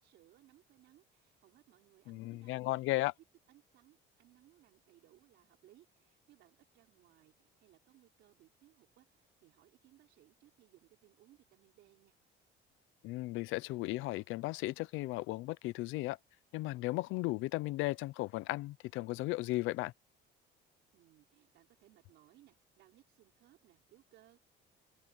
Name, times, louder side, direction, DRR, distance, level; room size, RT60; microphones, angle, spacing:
voice 1, 0.0-2.9 3.5-12.2 20.9-24.4, right 15 dB, 65° right, 5.4 m, -65 dB
voice 2, 2.1-3.1 13.0-16.2 16.5-19.9, left 19 dB, 90° left, 0.7 m, -35 dB
cardioid pair, 175°, 20 cm